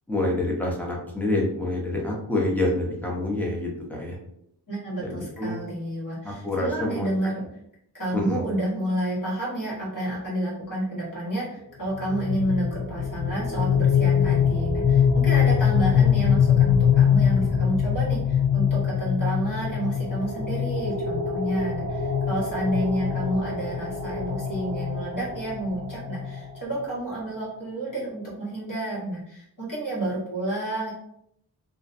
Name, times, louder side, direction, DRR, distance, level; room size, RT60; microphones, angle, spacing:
voice 1, 0.1-4.2 5.0-5.6 6.2-7.1 8.1-8.4, left 2 dB, 5° left, -2 dB, 0.6 m, -27 dB
voice 2, 4.7-7.4 7.9-30.9, right 1 dB, 50° left, -7 dB, 1.2 m, -30 dB
sound 1, 11.9-26.8, left 7 dB, 20° left, 1.1 m, -23 dB
2.5 x 2.1 x 2.5 m, 0.75 s
wide cardioid pair, 80°, 41 cm